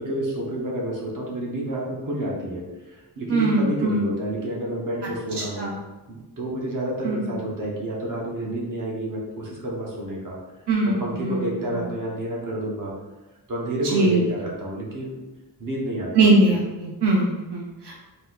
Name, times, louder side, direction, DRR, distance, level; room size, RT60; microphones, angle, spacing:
voice 1, 0.0-5.8 6.1-10.4 10.8-12.9 13.5-15.2 15.6-16.6, right 1 dB, 50° right, -3 dB, 1.0 m, -29 dB
voice 2, 3.3-4.0 5.4-5.7 7.0-7.4 10.7-11.9 13.8-14.3 16.1-18.0, right 2 dB, 80° right, -3 dB, 0.8 m, -22 dB
4.0 x 2.8 x 3.9 m, 1.1 s
wide cardioid pair, 165°, 40 cm